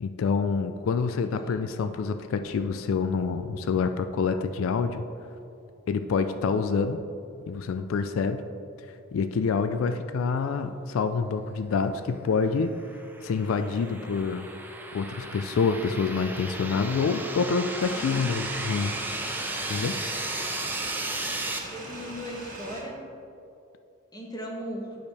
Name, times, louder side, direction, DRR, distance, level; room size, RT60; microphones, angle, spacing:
voice 1, 0.0-5.1 5.9-7.0 7.5-8.4 9.1-12.7 13.2-14.5 14.9-19.0 19.7-20.0, left 5 dB, 85° left, 9 dB, 0.3 m, -27 dB
sound 1, 12.6-21.6, right 2 dB, 10° right, 0.6 m, -35 dB
sound 2, 17.8-22.8, right 1 dB, 40° right, 1.6 m, -40 dB
voice 2, 21.7-23.0 24.1-24.9, equal, 20° left, -1 dB, 1.2 m, -37 dB
8.2 x 6.5 x 3.3 m, 2.7 s
head